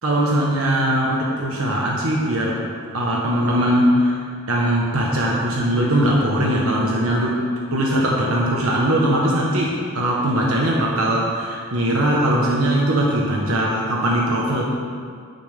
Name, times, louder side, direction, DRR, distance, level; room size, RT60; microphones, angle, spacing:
voice 1, 0.0-2.6 2.9-7.4 7.7-14.6, right 1 dB, 85° right, -3 dB, 1.4 m, -20 dB
11.5 x 9.6 x 3.7 m, 2.1 s
head